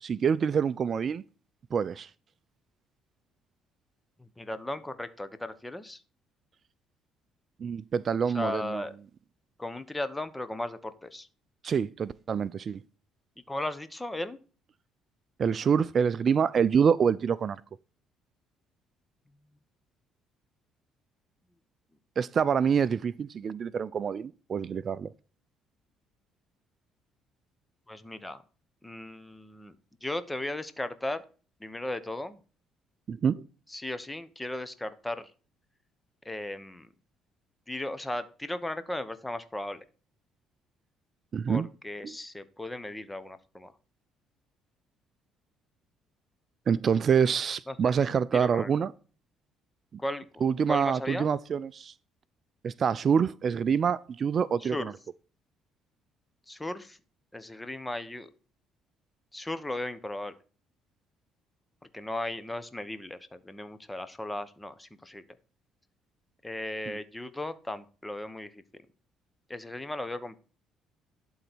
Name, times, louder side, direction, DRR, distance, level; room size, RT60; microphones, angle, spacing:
voice 1, 0.0-1.2 1.7-2.1 7.6-8.9 11.6-12.8 15.4-17.6 22.2-25.1 33.1-33.4 41.3-41.7 42.0-42.2 46.7-48.9 50.4-51.9 52.6-54.9 66.9-67.0, right 7 dB, 45° right, 0.4 m, -26 dB
voice 2, 4.4-6.0 8.3-8.9 9.6-11.3 13.5-14.4 27.9-28.4 28.8-29.7 30.0-31.2 31.6-32.4 33.7-35.3 36.2-36.9 37.7-39.8 41.5-43.7 47.7-47.9 48.3-48.7 50.0-50.2 50.7-51.3 54.7-54.8 56.5-57.0 57.3-58.3 59.3-60.3 61.9-65.2 66.4-68.6 69.5-70.4, left 1 dB, 10° left, 1.1 m, -36 dB
11.5 x 4.0 x 6.1 m
supercardioid pair, 75°, 0 cm